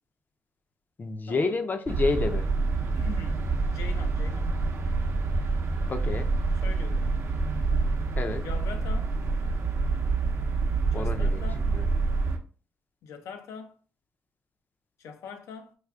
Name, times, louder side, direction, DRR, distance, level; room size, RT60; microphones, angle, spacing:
voice 1, 1.0-2.5 5.9-6.3 8.1-8.5 10.9-11.9, left 3 dB, 35° left, 0.5 m, -30 dB
sound 1, 1.9-12.4, right 3 dB, 60° right, 0.6 m, -27 dB
voice 2, 2.8-4.5 6.6-7.1 8.4-9.2 10.9-11.7 13.0-13.8 15.0-15.7, left 5 dB, 80° left, 0.5 m, -42 dB
4.8 x 2.4 x 2.3 m
supercardioid pair, 65°, 5 cm